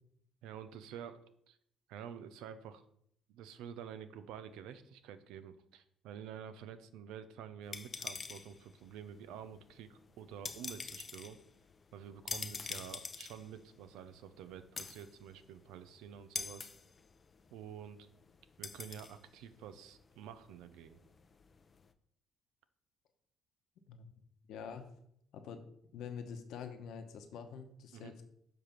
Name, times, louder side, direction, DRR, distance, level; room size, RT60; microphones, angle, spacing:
voice 1, 0.4-1.2 1.5-1.6 1.9-2.8 3.3-11.4 11.9-16.7 17.5-18.1 18.6-21.0 27.9-28.1, right 8 dB, 85° right, 12 dB, 0.6 m, -49 dB
sound 1, 7.6-21.9, left 5 dB, 35° left, 0.5 m, -47 dB
voice 2, 24.5-24.9 25.3-25.6 25.9-28.2, left 7 dB, 75° left, 6 dB, 1.0 m, -46 dB
6.9 x 3.3 x 5.8 m, 0.69 s
cardioid pair, 95°, 0 cm